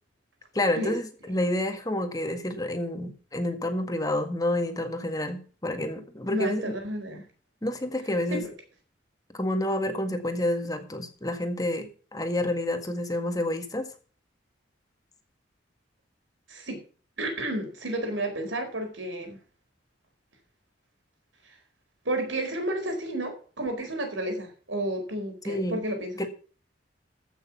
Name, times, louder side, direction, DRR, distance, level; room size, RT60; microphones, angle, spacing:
voice 1, 0.5-6.8 7.6-8.4 9.3-13.9 25.5-25.8 26.2-26.3, left 1 dB, 20° left, 6 dB, 1.7 m, -29 dB
voice 2, 6.3-7.2 8.3-8.5 16.5-16.8 17.2-19.4 22.0-26.2, right 1 dB, 85° right, 5 dB, 4.4 m, -31 dB
15.0 x 6.6 x 6.0 m, 0.40 s
head